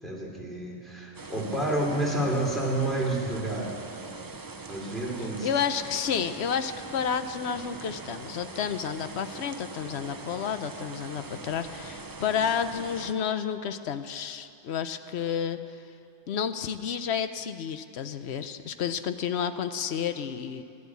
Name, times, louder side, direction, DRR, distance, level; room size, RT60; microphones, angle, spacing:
voice 1, 0.0-3.7 4.7-5.5, right 1 dB, ahead, -3 dB, 2.8 m, -29 dB
sound 1, 1.1-13.1, right 3 dB, 25° right, 0.4 m, -42 dB
voice 2, 5.4-15.8 16.3-20.6, left 7 dB, 65° left, 11 dB, 0.9 m, -31 dB
14.5 x 11.0 x 8.3 m, 2.7 s
omnidirectional pair, 1.3 m